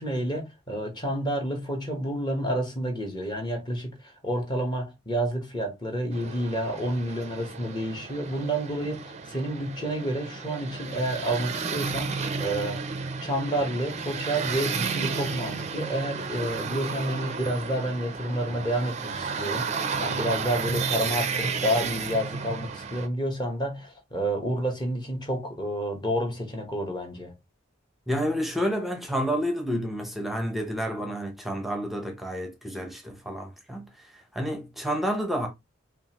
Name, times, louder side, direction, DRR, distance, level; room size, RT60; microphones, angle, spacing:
voice 1, 0.0-12.8 13.2-27.3, right 1 dB, 20° left, 1.2 m, -29 dB
sound 1, 6.1-23.1, right 5 dB, 35° right, 0.5 m, -32 dB
voice 2, 28.1-33.8 34.3-35.5, equal, ahead, 0.8 m, -29 dB
5.2 x 2.5 x 2.9 m
head